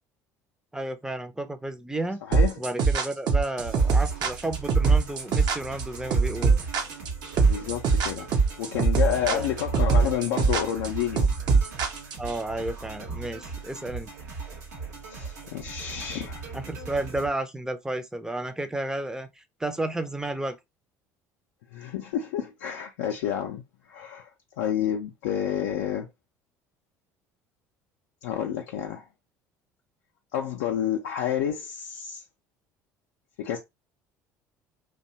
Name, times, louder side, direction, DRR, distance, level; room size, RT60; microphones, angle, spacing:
voice 1, 0.7-2.2 2.6-6.6 9.1-9.4 12.2-14.1 16.5-20.6, right 2 dB, 5° right, 0.5 m, -32 dB
voice 2, 2.3-2.6 7.4-8.3 8.6-11.3 15.1-16.5 21.7-23.6 23.9-24.3 24.6-26.1 28.2-29.0 30.3-32.2 33.4-33.6, left 10 dB, 70° left, 0.4 m, -29 dB
sound 1, 2.3-12.4, right 4 dB, 50° right, 0.6 m, -22 dB
sound 2, 3.6-17.3, right 4 dB, 80° right, 0.9 m, -38 dB
2.6 x 2.2 x 2.8 m
hypercardioid pair, 60°, 9 cm